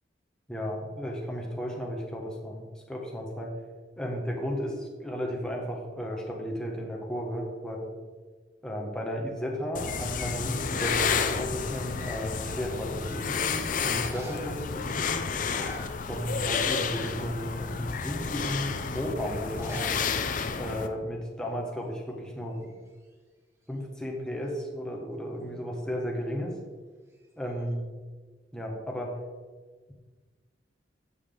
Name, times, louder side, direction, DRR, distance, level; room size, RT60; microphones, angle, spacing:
voice 1, 0.5-3.5 4.0-8.0 8.6-15.2 16.1-19.8 20.6-22.7 23.7-26.5 27.4-27.8 28.5-29.2, equal, 5° left, -1 dB, 1.3 m, -34 dB
sound 1, 9.7-20.9, left 5 dB, 45° left, 0.5 m, -31 dB
sound 2, 14.0-14.6 15.3-16.5 16.8-17.2 17.8-17.9 19.4-20.0 20.3-20.4 20.6-20.7 21.4-21.7 21.9-23.1 27.1-27.7, equal, 15° right, 1.0 m, -46 dB
8.8 x 7.0 x 3.8 m, 1.4 s
head